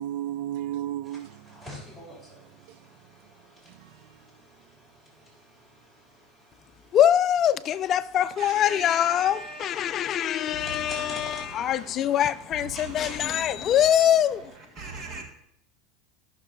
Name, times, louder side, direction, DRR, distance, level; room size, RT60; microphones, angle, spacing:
voice 1, 0.0-4.9 10.1-10.3, right 12 dB, 65° right, 0.4 m, -38 dB
sound 1, 1.0-14.5, equal, 10° right, 3.6 m, -48 dB
voice 2, 6.9-14.5, left 10 dB, 40° left, 0.4 m, -23 dB
voice 3, 8.4-12.3 12.6-14.0 14.8-15.2, right 3 dB, 35° right, 1.6 m, -42 dB
15.0 x 6.1 x 2.6 m
supercardioid pair, 130°, 0 cm